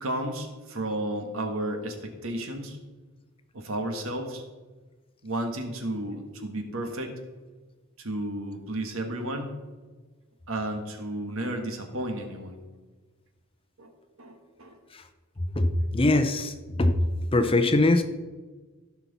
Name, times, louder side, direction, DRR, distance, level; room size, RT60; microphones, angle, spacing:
voice 1, 0.0-2.8 3.5-4.4 5.2-7.2 8.0-9.6 10.5-12.6 13.8-13.9 14.2-14.8, right 1 dB, 70° right, 5 dB, 1.5 m, -32 dB
voice 2, 15.6-16.5 16.8-17.0 17.3-18.0, left 2 dB, 25° left, 8 dB, 0.6 m, -21 dB
15.0 x 5.8 x 4.1 m, 1.3 s
head